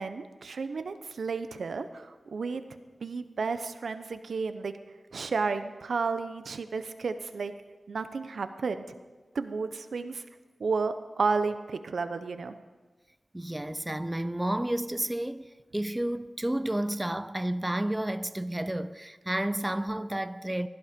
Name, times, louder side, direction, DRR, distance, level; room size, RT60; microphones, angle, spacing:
voice 1, 0.0-2.7 3.0-4.7 5.1-7.5 7.9-8.9 9.3-10.2 10.6-12.5, right 4 dB, 80° right, 0.9 m, -32 dB
voice 2, 13.3-15.5 15.7-20.7, right 1 dB, 15° right, 0.4 m, -31 dB
16.5 x 11.5 x 5.2 m
wide cardioid pair, 95°, 0 cm